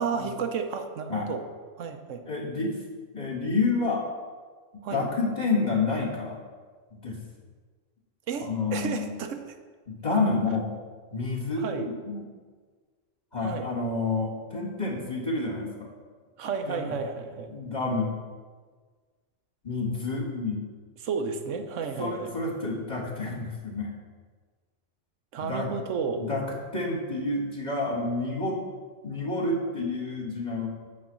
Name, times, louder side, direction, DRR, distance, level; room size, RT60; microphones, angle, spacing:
voice 1, 0.0-1.4 1.8-2.2 4.8-5.1 8.3-9.4 11.6-11.9 13.4-13.7 16.4-17.5 21.0-22.3 25.3-26.3, right 6 dB, 80° right, 7 dB, 1.2 m, -32 dB
voice 2, 2.3-2.8 3.1-4.1 4.9-6.4 6.9-7.2 8.4-9.1 9.9-10.7 11.1-12.2 13.3-15.9 16.7-16.9 17.5-18.1 19.6-20.6 22.0-23.9 25.4-25.7 26.2-26.5 26.7-28.6 29.0-30.7, left 3 dB, 35° left, -3 dB, 1.7 m, -29 dB
9.5 x 4.2 x 7.4 m, 1.5 s
omnidirectional pair, 1.3 m